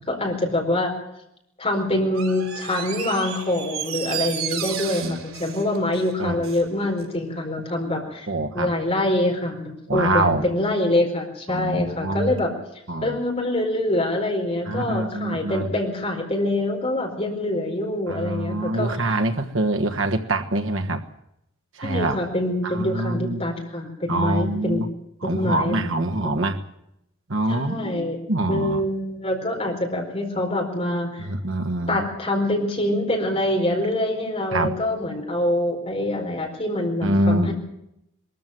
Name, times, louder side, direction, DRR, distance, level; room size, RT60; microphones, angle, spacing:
voice 1, 0.1-0.9 1.6-8.3 8.5-12.5 13.0-18.9 21.8-24.8 25.2-25.8 26.2-26.5 27.5-28.2 28.5-31.3 31.9-37.5, left 1 dB, 30° left, 2 dB, 4.6 m, -25 dB
Door, 2.1-6.7 7.0-7.1, right 9 dB, 85° right, 4.0 m, -33 dB
voice 2, 8.3-8.7 9.9-10.4 11.5-12.4 12.9-13.2 14.7-15.7 18.1-21.0 21.8-22.2 22.6-23.4 24.1-24.9 25.2-26.6 27.3-28.0 28.3-28.8 31.2-32.0 34.5-34.7 37.0-37.5, right 2 dB, 65° right, 6 dB, 1.4 m, -25 dB
22.0 x 14.0 x 9.3 m, 0.80 s
head